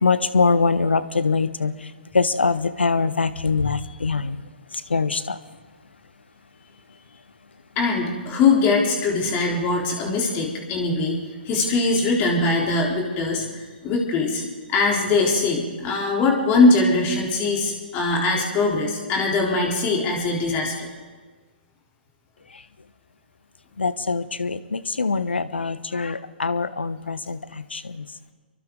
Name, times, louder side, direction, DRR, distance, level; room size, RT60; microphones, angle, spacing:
voice 1, 0.0-4.4 4.7-5.4 22.5-22.6 23.8-28.1, left 4 dB, 80° left, 14 dB, 1.1 m, -23 dB
voice 2, 7.8-14.4 14.7-20.9, left 3 dB, 30° left, -1 dB, 3.7 m, -21 dB
28.5 x 23.0 x 3.9 m, 1.4 s
figure-of-eight pair, 125°, 6 cm